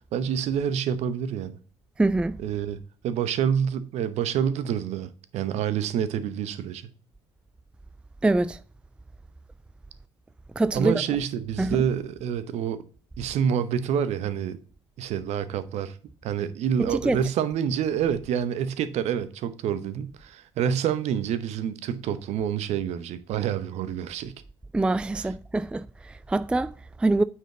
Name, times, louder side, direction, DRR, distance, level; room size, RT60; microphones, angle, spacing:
voice 1, 0.1-1.6 2.4-2.8 3.0-6.9 10.7-12.8 13.2-14.6 15.0-16.0 16.2-24.3, right 8 dB, 55° right, 0.8 m, -27 dB
voice 2, 2.0-2.4 8.2-8.6 10.6-10.9 11.6-11.8 16.8-17.2 24.7-27.2, right 2 dB, 5° right, 0.3 m, -24 dB
9.0 x 4.7 x 3.7 m
hypercardioid pair, 55°, 13 cm